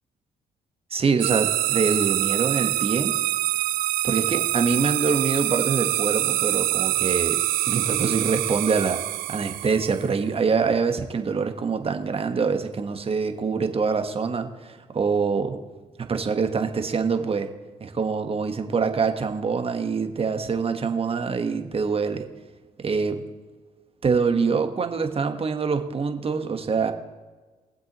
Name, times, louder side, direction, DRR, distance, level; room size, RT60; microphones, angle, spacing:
voice 1, 0.9-3.1 4.0-7.4 7.7-9.0 9.3-15.6 16.0-17.5 17.8-22.3 22.8-23.2 24.0-26.9, right 5 dB, 40° right, 7 dB, 1.3 m, -25 dB
sound 1, 1.2-10.1, right 16 dB, 75° right, 0.4 m, -25 dB
21.5 x 7.7 x 3.0 m, 1.3 s
supercardioid pair, 55°, 15 cm